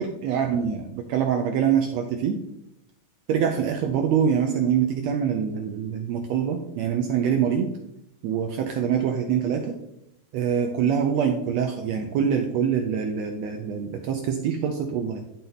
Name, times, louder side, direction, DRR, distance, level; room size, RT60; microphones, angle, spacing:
voice 1, 0.0-2.4 3.3-7.7 8.2-9.8 10.3-15.2, right 7 dB, 85° right, 5 dB, 1.5 m, -24 dB
11.5 x 4.1 x 3.9 m, 0.81 s
omnidirectional pair, 3.8 m